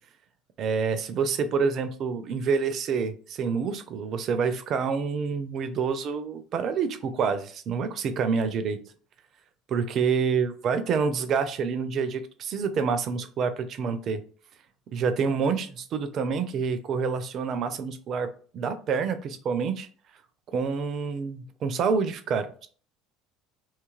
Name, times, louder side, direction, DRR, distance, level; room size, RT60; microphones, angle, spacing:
voice 1, 0.6-8.8 9.7-14.2 14.9-18.3 18.5-19.9 20.5-22.7, right 5 dB, 45° right, 10 dB, 0.4 m, -27 dB
2.7 x 2.4 x 2.3 m, 0.43 s
figure-of-eight pair, 65°, 0 cm